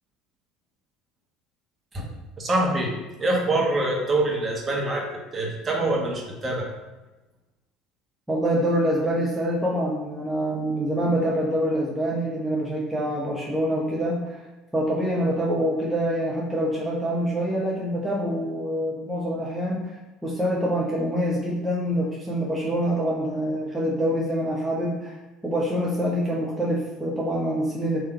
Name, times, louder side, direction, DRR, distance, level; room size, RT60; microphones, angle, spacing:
voice 1, 2.4-2.9 3.2-5.1 5.3-6.7, right 2 dB, 30° right, -2 dB, 1.4 m, -24 dB
voice 2, 8.3-14.4 14.7-19.8 20.2-25.2 25.4-28.0, equal, 10° right, -5 dB, 1.0 m, -25 dB
3.8 x 3.2 x 4.4 m, 1.1 s
hypercardioid pair, 65°, 0 cm